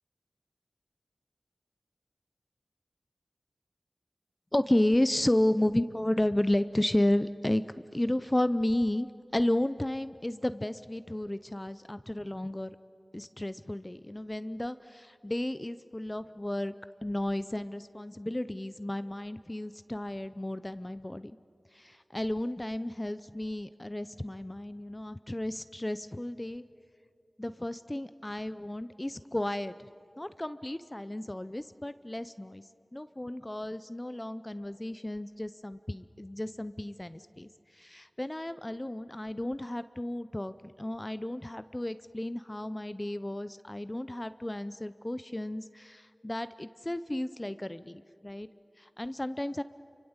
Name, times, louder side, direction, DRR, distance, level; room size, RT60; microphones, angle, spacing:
voice 1, 4.5-7.6 7.9-9.1 9.3-12.7 13.1-16.7 17.0-21.4 21.7-26.6 27.4-29.7 30.2-32.6 32.9-48.5 48.8-49.6, left 1 dB, 20° left, 13 dB, 0.6 m, -32 dB
29.0 x 24.5 x 8.1 m, 2.5 s
wide cardioid pair, 55°, 0 cm